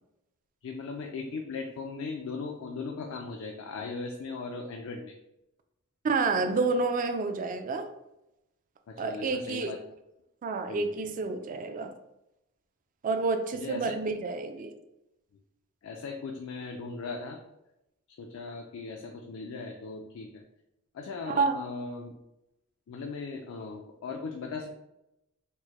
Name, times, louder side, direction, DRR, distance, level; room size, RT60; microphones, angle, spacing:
voice 1, 0.6-5.1 8.9-9.8 10.7-10.9 13.5-13.9 15.8-17.4 18.2-20.4 20.9-22.1 22.9-24.8, left 4 dB, 70° left, 3 dB, 0.4 m, -38 dB
voice 2, 6.0-7.9 9.0-9.7 10.4-11.9 13.0-14.7 21.3-21.6, right 4 dB, 40° right, 7 dB, 0.3 m, -29 dB
4.5 x 2.1 x 2.9 m, 0.88 s
head